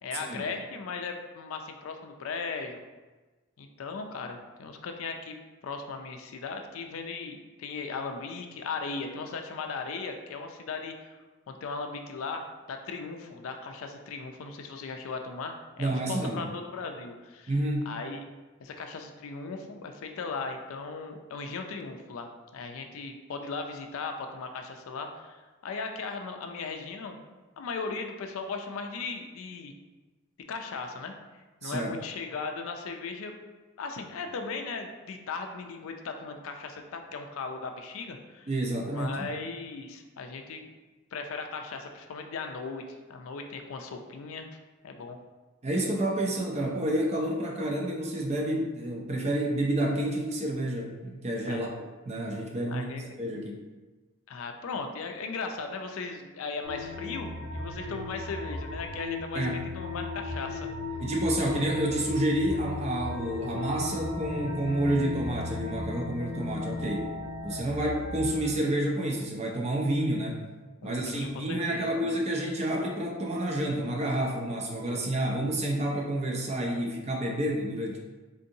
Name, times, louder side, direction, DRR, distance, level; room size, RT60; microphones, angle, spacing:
voice 1, 0.0-2.8 3.6-5.4 5.6-11.2 11.5-17.5 17.9-18.3 18.6-27.3 27.6-29.7 30.5-31.1 31.6-33.3 33.8-38.5 38.9-40.7 41.1-44.5 44.8-45.2 51.5-51.7 52.7-53.0 54.3-59.5 59.7-60.7 70.8-72.0, left 4 dB, 75° left, 5 dB, 0.4 m, -37 dB
voice 2, 15.8-16.5 17.5-17.9 31.6-31.9 38.5-39.3 45.6-51.7 52.1-52.9 53.2-53.6 59.3-59.6 61.0-67.1 67.4-70.4 70.8-78.0, right 1 dB, 30° right, 0 dB, 0.4 m, -29 dB
Dying Pad Evolved, 56.6-68.6, left 3 dB, 75° right, 1.4 m, -36 dB
3.7 x 2.6 x 2.6 m, 1.2 s
head